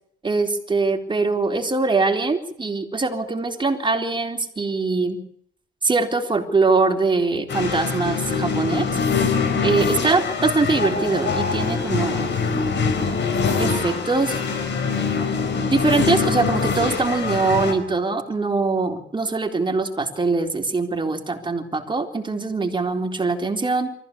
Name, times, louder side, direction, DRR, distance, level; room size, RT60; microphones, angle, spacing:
voice 1, 0.2-5.2 5.8-8.9 9.6-12.3 13.6-14.4 15.7-23.9, right 3 dB, 25° right, 4 dB, 3.8 m, -22 dB
sound 1, 7.5-17.7, left 5 dB, 65° left, 5.3 m, -23 dB
24.5 x 15.0 x 8.5 m, 0.66 s
cardioid pair, 90°, 20 cm